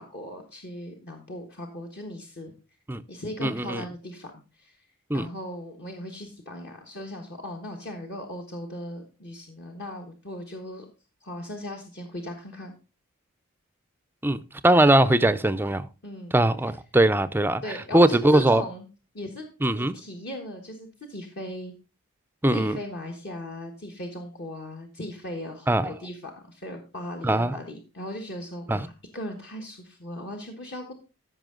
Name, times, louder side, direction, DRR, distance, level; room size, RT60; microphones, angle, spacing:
voice 1, 0.0-2.5 3.1-4.9 5.1-10.8 11.2-12.7 16.0-16.3 17.6-18.8 19.1-19.5 19.8-21.7 22.5-30.9, left 1 dB, 45° left, 1.4 m, -38 dB
voice 2, 3.4-3.8 5.1-5.3 14.2-15.9 16.3-18.6 19.6-19.9 22.4-22.8 25.7-25.9 27.2-27.6 28.7-28.9, right 1 dB, 10° right, 0.5 m, -21 dB
14.0 x 5.5 x 3.8 m
head